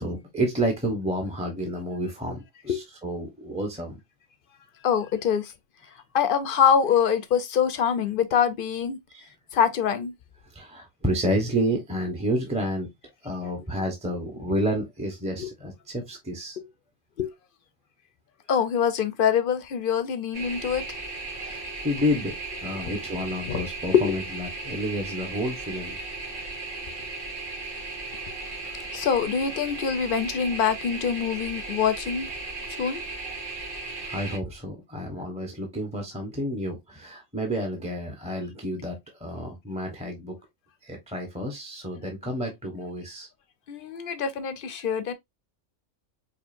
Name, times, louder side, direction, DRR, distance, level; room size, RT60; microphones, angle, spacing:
voice 1, 0.0-4.0 9.1-9.3 10.4-12.9 13.2-16.6 21.3-26.0 34.0-40.4 40.8-43.3, equal, 5° right, 0.7 m, -30 dB
voice 2, 4.8-5.5 6.1-9.0 9.5-10.1 15.4-15.5 17.2-17.3 18.5-21.0 23.5-23.6 23.9-24.2 28.9-32.3 32.8-33.0 43.7-45.1, left 7 dB, 55° left, 0.6 m, -24 dB
sound 1, 20.3-34.4, right 3 dB, 70° right, 1.6 m, -36 dB
4.8 x 2.8 x 2.5 m
omnidirectional pair, 1.3 m